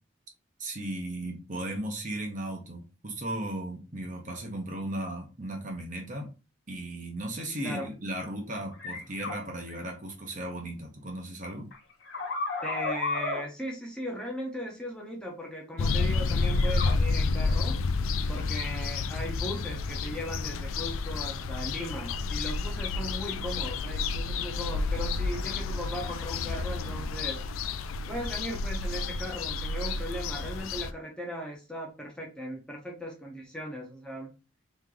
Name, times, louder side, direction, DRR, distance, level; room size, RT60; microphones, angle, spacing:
voice 1, 0.6-6.3 6.7-11.7, right 1 dB, 40° right, 2 dB, 0.9 m, -36 dB
sound 1, 8.7-9.4 9.7-9.8 11.7-13.4 16.5-17.0 25.0-25.1 26.0-26.3, left 3 dB, 55° left, 1.4 m, -33 dB
voice 2, 12.6-17.8 18.3-27.7 28.1-34.3, equal, 5° left, -1 dB, 0.9 m, -38 dB
sound 2, 15.8-30.9, left 3 dB, 85° left, 0.4 m, -30 dB
3.5 x 3.2 x 3.8 m, 0.31 s
head